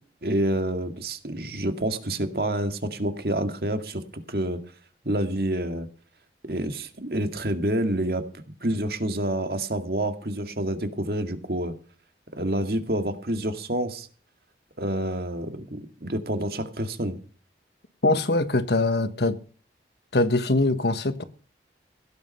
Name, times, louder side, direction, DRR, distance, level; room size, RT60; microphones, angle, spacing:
voice 1, 0.2-4.6 5.0-5.9 6.5-8.2 8.6-11.7 12.3-14.1 14.8-17.2, right 1 dB, 60° right, 2.1 m, -28 dB
voice 2, 18.0-19.4 20.1-21.2, left 2 dB, 70° left, 1.5 m, -22 dB
17.0 x 9.7 x 5.6 m
head